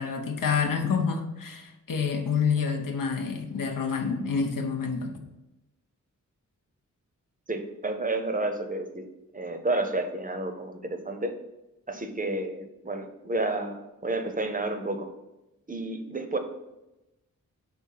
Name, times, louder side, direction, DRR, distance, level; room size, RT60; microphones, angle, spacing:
voice 1, 0.0-5.2, left 6 dB, 90° left, 4 dB, 0.8 m, -28 dB
voice 2, 7.5-9.0 9.3-11.3 11.9-15.1 15.7-16.4, right 2 dB, 25° right, 6 dB, 0.6 m, -30 dB
5.1 x 3.5 x 5.5 m, 0.97 s
wide cardioid pair, 110°, 32 cm